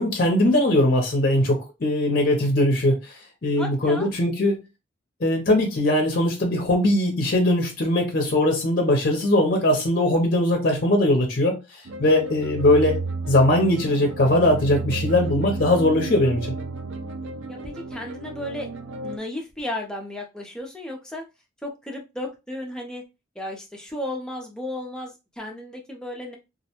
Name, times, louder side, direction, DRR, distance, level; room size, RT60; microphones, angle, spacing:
voice 1, 0.0-4.6 5.2-13.0 13.3-16.4, left 1 dB, 50° left, 0.6 m, -20 dB
voice 2, 3.6-4.1 17.5-18.7 19.0-21.2 21.6-23.0 23.4-26.4, left 1 dB, 5° left, 0.5 m, -34 dB
sound 1, 11.9-19.2, right 3 dB, 80° right, 0.4 m, -32 dB
2.4 x 2.1 x 2.9 m
head